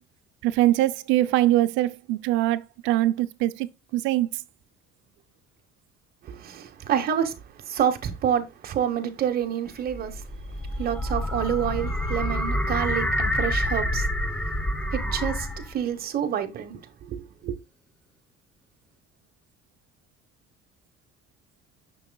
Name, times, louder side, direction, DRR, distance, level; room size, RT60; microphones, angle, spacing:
voice 1, 0.4-4.3, right 15 dB, 85° right, 0.6 m, -23 dB
voice 2, 6.2-14.6 14.9-17.5, right 9 dB, 55° right, 1.2 m, -28 dB
sound 1, 9.7-15.8, left 1 dB, 5° left, 0.9 m, -27 dB
6.8 x 6.2 x 2.3 m
cardioid pair, 105°, 19 cm